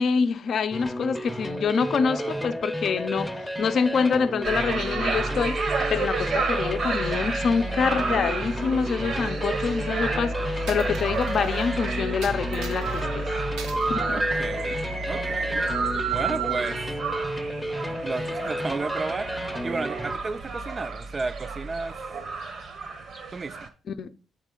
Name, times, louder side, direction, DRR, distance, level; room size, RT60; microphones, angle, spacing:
voice 1, 0.0-13.3 13.9-14.2 23.9-24.1, left 6 dB, 55° left, 0.5 m, -26 dB
sound 1, 0.7-20.2, equal, 5° left, 0.7 m, -32 dB
voice 2, 1.9-2.5 14.1-14.8 15.1-15.6 16.1-16.8 18.0-22.0 23.3-23.7, right 3 dB, 30° right, 0.4 m, -33 dB
sound 2, 4.4-23.7, right 3 dB, 60° right, 0.9 m, -30 dB
Coin (dropping), 10.7-11.7 12.2-13.0 13.6-13.9 14.3-15.4, right 6 dB, 85° right, 0.8 m, -42 dB
8.2 x 4.1 x 3.7 m
cardioid pair, 90°, 0 cm